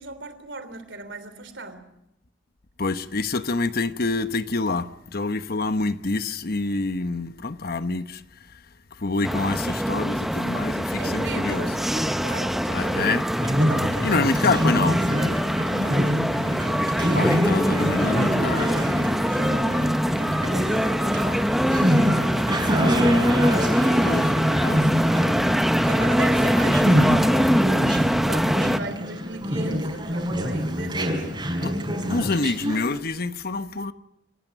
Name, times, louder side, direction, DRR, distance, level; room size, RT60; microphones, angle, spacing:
voice 1, 0.0-1.9 11.0-13.1 13.6-14.3 16.7-23.3 24.6-25.2 25.9-27.7 28.1-31.3, right 2 dB, 80° right, 3.3 m, -38 dB
voice 2, 2.8-8.2 9.0-11.7 12.7-13.3 14.0-15.0 17.1-18.7 23.0-23.4 24.0-24.3 24.6-25.0 25.4-25.7 26.6-27.2 31.6-31.7 32.1-33.9, left 3 dB, 55° left, 1.0 m, -27 dB
sound 1, 9.2-28.8, equal, ahead, 0.8 m, -23 dB
Conversation, 13.3-33.0, equal, 25° right, 5.6 m, -26 dB
27.5 x 15.5 x 8.8 m
head